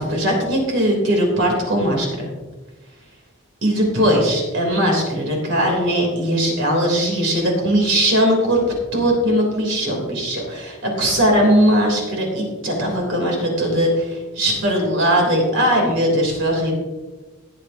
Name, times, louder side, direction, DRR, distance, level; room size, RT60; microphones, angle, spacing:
voice 1, 0.0-2.3 3.6-8.6 8.9-16.7, equal, 60° right, 0 dB, 3.3 m, -19 dB
19.5 x 7.5 x 2.8 m, 1.2 s
head